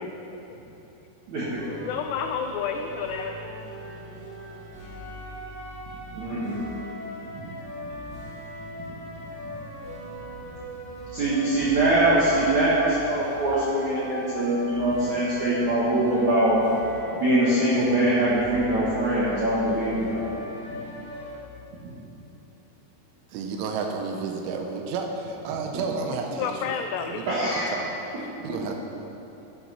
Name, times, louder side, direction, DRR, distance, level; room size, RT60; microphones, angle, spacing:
voice 1, 1.3-1.6 6.1-6.7 11.1-16.6 17.1-20.3 21.8-21.9 27.3-27.7, right 1 dB, 55° right, -8 dB, 2.2 m, -23 dB
sound 1, 1.6-21.3, equal, 15° right, 2.7 m, -39 dB
voice 2, 1.8-3.4 26.4-27.2, left 7 dB, 90° left, 6 dB, 2.4 m, -30 dB
voice 3, 23.3-28.7, right 4 dB, 90° right, 2 dB, 3.4 m, -32 dB
12.0 x 10.0 x 5.7 m, 3.0 s
omnidirectional pair, 5.4 m